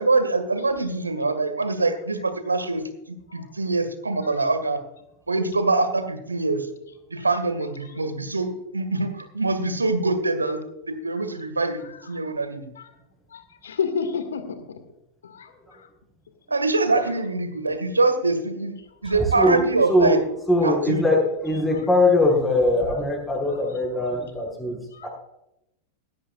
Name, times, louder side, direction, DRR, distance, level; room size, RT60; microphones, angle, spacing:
voice 1, 0.0-2.8 3.3-4.8 5.3-6.7 7.1-11.8 12.1-12.7 16.5-18.7 19.0-20.2 20.6-21.1, right 3 dB, 80° right, 9 dB, 1.8 m, -24 dB
voice 2, 13.3-14.4 15.3-15.5 19.1-19.2 24.9-25.1, left 6 dB, 65° left, 9 dB, 1.9 m, -29 dB
voice 3, 20.5-25.1, left 1 dB, 5° left, -6 dB, 5.4 m, -21 dB
17.0 x 15.0 x 2.5 m, 0.84 s
figure-of-eight pair, 90°, 0 cm